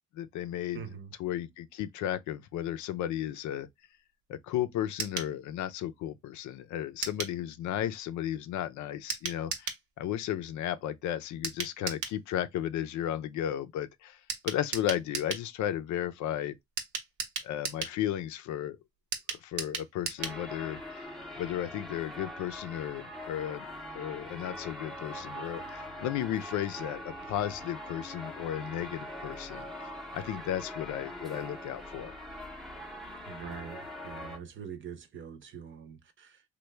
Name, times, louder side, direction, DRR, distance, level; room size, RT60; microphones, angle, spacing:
voice 1, 0.1-0.8 1.2-3.7 4.3-9.7 10.0-16.5 17.4-18.8 19.3-21.0 21.4-32.2, left 11 dB, 75° left, 0.5 m, -34 dB
voice 2, 0.7-1.1 33.3-36.4, right 7 dB, 40° right, 0.7 m, -44 dB
sound 1, 5.0-5.3 7.0-7.4 9.1-9.8 11.4-12.2 14.3-15.5 16.8-18.0 19.1-20.4 20.7-20.8 21.0-21.1, right 6 dB, 85° right, 0.9 m, -36 dB
sound 2, 20.2-34.4, left 1 dB, ahead, 0.6 m, -42 dB
3.2 x 2.2 x 3.2 m
cardioid pair, 105°, 29 cm